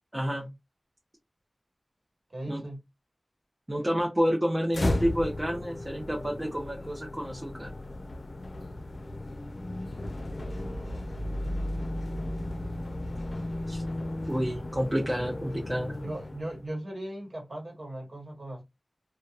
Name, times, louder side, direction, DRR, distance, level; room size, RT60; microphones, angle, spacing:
voice 1, 0.1-0.5 2.5-2.6 3.7-7.7 13.7-13.8 14.3-16.0, equal, 20° right, 0.7 m, -29 dB
voice 2, 2.3-2.8 10.2-11.2 16.0-18.6, right 1 dB, 65° right, 1.1 m, -39 dB
sound 1, 4.7-16.7, left 1 dB, 70° left, 0.5 m, -35 dB
2.8 x 2.1 x 2.4 m
wide cardioid pair, 40°, 0 cm